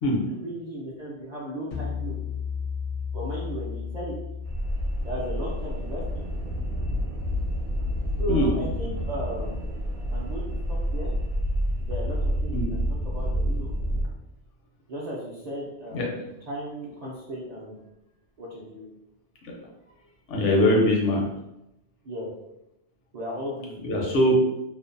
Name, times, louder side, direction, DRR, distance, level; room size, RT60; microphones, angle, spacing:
voice 1, 0.2-2.2 3.1-4.1 5.0-6.2 8.2-9.7 10.1-11.1 11.8-13.7 14.9-17.8 18.4-18.8 22.0-22.3 23.1-23.9, equal, 55° right, -6 dB, 0.4 m, -35 dB
sound 1, 1.7-7.0, left 6 dB, 60° left, 0.6 m, -35 dB
sound 2, 4.4-14.1, equal, 70° right, 0.8 m, -28 dB
voice 2, 20.3-21.2 23.8-24.5, equal, 85° left, -1 dB, 1.0 m, -22 dB
2.6 x 2.1 x 2.5 m, 0.90 s
omnidirectional pair, 1.2 m